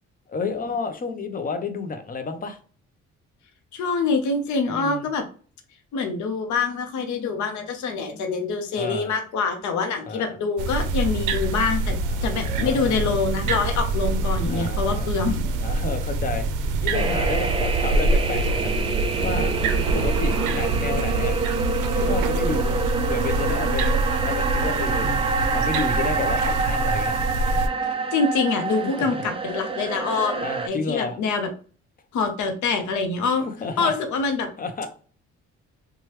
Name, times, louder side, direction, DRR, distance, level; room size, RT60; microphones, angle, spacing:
voice 1, 0.3-2.6 4.7-5.1 8.8-9.1 10.1-10.4 12.0-13.0 14.5-15.1 15.6-16.5 16.8-18.7 19.2-19.5 19.9-21.4 21.9-25.1 25.5-27.1 28.7-29.2 30.4-31.2 33.5-33.9 34.6-34.9, left 4 dB, 30° left, 8 dB, 0.6 m, -31 dB
voice 2, 3.7-5.2 5.9-12.0 12.2-15.4 27.8-31.5 32.1-33.4 33.8-34.5, left 4 dB, 70° left, 5 dB, 0.7 m, -25 dB
sound 1, 10.6-27.7, right 2 dB, 85° right, 0.5 m, -25 dB
sound 2, 16.9-30.7, right 4 dB, 20° right, 0.3 m, -27 dB
3.0 x 2.3 x 3.0 m, 0.41 s
cardioid pair, 90°, 30 cm